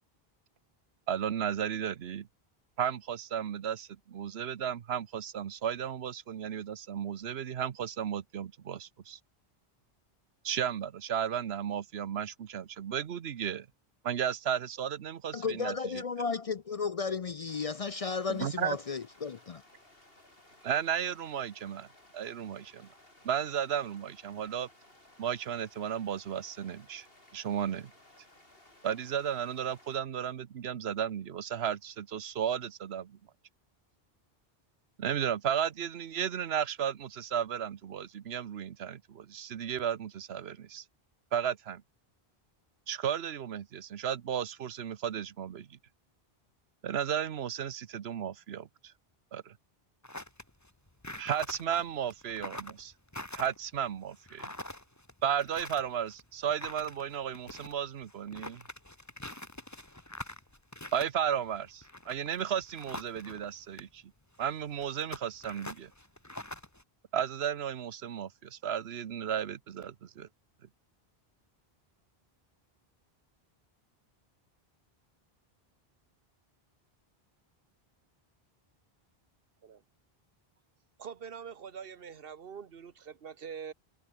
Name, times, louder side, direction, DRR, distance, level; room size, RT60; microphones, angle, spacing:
voice 1, 1.1-2.3 2.8-9.2 10.4-13.7 14.0-16.0 18.3-18.8 20.6-21.9 22.1-22.9 23.2-24.7 25.2-27.1 27.3-27.9 28.8-33.2 35.0-40.8 41.3-41.8 42.9-45.8 46.8-48.9 49.3-49.5 51.2-52.9 53.3-54.5 55.2-58.6 60.9-64.0 64.4-65.9 67.1-70.3, right 9 dB, 85° right, 1.1 m, -34 dB
voice 2, 15.3-19.6, left 5 dB, 45° left, 0.5 m, -34 dB
sound 1, 17.5-30.0, left 1 dB, 70° left, 6.1 m, -59 dB
sound 2, 50.0-63.5 63.7-63.8 64.4-66.8, left 1 dB, 15° left, 2.1 m, -44 dB
voice 3, 81.0-83.7, right 7 dB, 65° right, 1.2 m, -44 dB
omnidirectional pair, 1.0 m